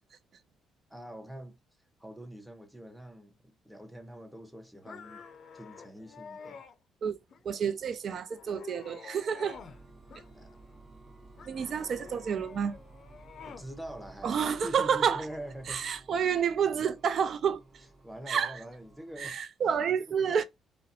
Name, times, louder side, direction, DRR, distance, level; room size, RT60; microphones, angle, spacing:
voice 1, 0.9-1.6 2.0-5.2 5.5-6.6 10.3-10.6 13.4-15.9 18.0-19.4 20.0-20.4, right 1 dB, 5° right, 0.8 m, -44 dB
sound 1, 4.8-6.7 7.3-7.8 8.2-9.8 10.1-10.8 11.4-13.7, left 6 dB, 55° left, 0.5 m, -49 dB
voice 2, 7.4-9.6 11.5-12.8 14.2-15.3 15.7-17.6 18.3-18.6 19.2-20.4, right 7 dB, 55° right, 0.3 m, -29 dB
sound 2, 9.5-19.3, right 2 dB, 30° right, 1.0 m, -54 dB
2.4 x 2.0 x 2.6 m
supercardioid pair, 65°, 0 cm